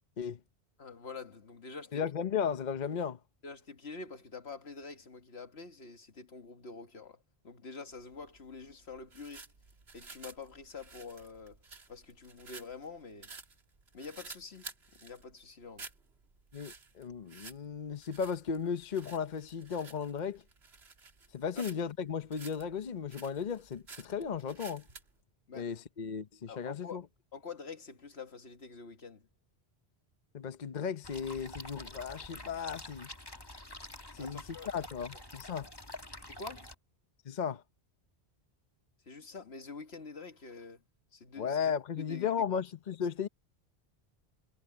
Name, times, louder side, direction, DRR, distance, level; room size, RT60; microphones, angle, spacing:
voice 1, 0.8-2.0 3.4-9.4 9.9-11.6 11.9-13.3 13.9-15.9 25.5-25.8 26.5-27.0 27.3-29.3 34.2-34.7 35.1-35.2 36.3-36.7 39.1-40.8 41.1-41.6 42.0-42.3 42.6-42.7, left 4 dB, 80° left, 1.9 m, -46 dB
voice 2, 1.9-3.2 16.5-20.4 21.3-24.8 25.5-27.0 30.3-33.1 34.1-35.7 37.3-37.6 41.4-43.3, left 7 dB, 50° left, 0.9 m, -35 dB
sound 1, 7.9-25.1, right 4 dB, 75° right, 2.1 m, -52 dB
sound 2, 31.0-36.7, left 1 dB, 20° left, 2.2 m, -47 dB
omnidirectional pair, 1.1 m